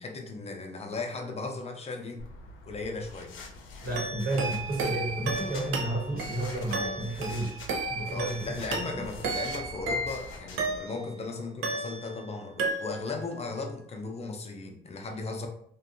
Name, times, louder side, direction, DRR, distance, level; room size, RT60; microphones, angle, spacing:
voice 1, 0.0-2.2 2.7-3.3 8.1-15.5, left 3 dB, 30° left, 3 dB, 0.5 m, -36 dB
sound 1, 2.2-10.8, left 2 dB, 85° left, 0.5 m, -45 dB
voice 2, 3.8-7.6 7.9-8.6 8.9-9.0, right 1 dB, 50° right, -2 dB, 1.0 m, -31 dB
sound 2, 4.0-11.2 11.6-12.3 12.6-13.2, right 3 dB, 80° right, 0.5 m, -34 dB
2.6 x 2.2 x 2.5 m, 0.66 s
cardioid pair, 90°, 20 cm